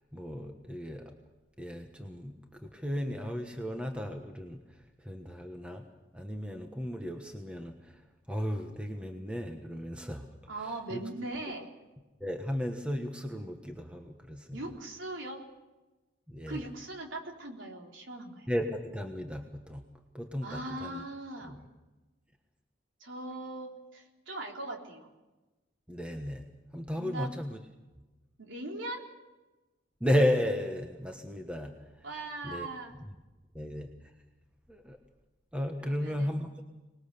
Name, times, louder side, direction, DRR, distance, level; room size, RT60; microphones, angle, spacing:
voice 1, 0.1-1.1 1.6-4.6 5.0-5.9 6.1-8.0 8.3-10.3 10.6-11.0 12.2-14.6 16.3-16.6 18.5-19.9 20.1-21.0 21.4-21.7 25.9-26.4 26.7-27.6 30.0-31.7 32.4-32.7 33.5-33.9 34.7-35.0 35.5-36.5, equal, 5° right, 3 dB, 1.3 m, -34 dB
voice 2, 10.5-11.7 14.5-15.4 16.5-18.5 20.4-21.6 23.0-25.1 27.0-27.3 28.4-29.0 32.0-32.9 35.8-36.3, right 2 dB, 80° right, 1 dB, 3.9 m, -40 dB
25.0 x 20.5 x 6.8 m, 1.1 s
head